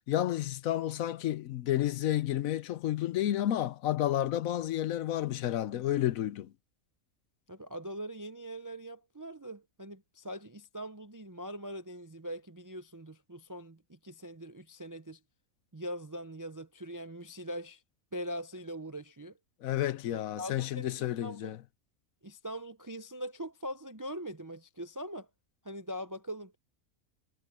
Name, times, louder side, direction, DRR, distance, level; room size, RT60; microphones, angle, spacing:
voice 1, 0.1-6.5 19.6-21.6, left 12 dB, 75° left, 1.1 m, -31 dB
voice 2, 7.5-15.2 15.7-17.8 18.1-19.3 20.1-21.5 22.2-25.3 25.6-26.6, equal, 30° right, 0.4 m, -42 dB
omnidirectional pair, 1.5 m